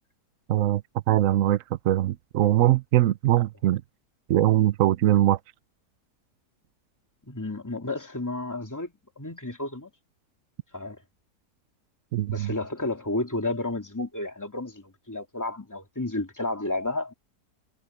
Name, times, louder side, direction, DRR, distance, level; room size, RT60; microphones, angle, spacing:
voice 1, 0.5-0.8 1.1-3.8 4.3-5.4 12.1-12.5, right 13 dB, 65° right, 0.9 m, -22 dB
voice 2, 7.3-9.9 10.7-11.0 12.3-17.1, left 2 dB, 10° left, 2.9 m, -32 dB
omnidirectional pair, 1.7 m